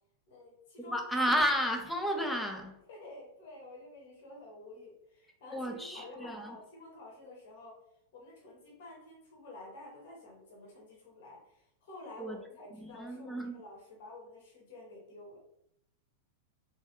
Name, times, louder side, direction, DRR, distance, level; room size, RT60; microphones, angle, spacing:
voice 1, 0.3-1.0 2.9-7.8 8.1-15.4, left 2 dB, 55° left, 1.0 m, -50 dB
voice 2, 0.9-2.8 5.5-6.6 12.2-12.4 12.8-13.6, equal, 5° left, 0.5 m, -32 dB
3.1 x 2.2 x 2.9 m
figure-of-eight pair, 95°, 0 cm